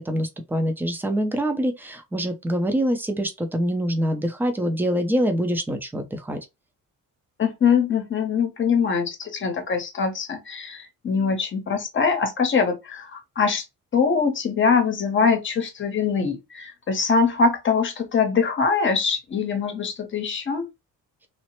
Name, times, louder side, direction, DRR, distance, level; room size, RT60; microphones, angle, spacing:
voice 1, 0.0-6.4, equal, 5° right, 0.5 m, -25 dB
voice 2, 7.4-13.6 13.9-20.7, left 5 dB, 35° left, 0.8 m, -23 dB
3.1 x 2.0 x 3.0 m
cardioid pair, 150°, 34 cm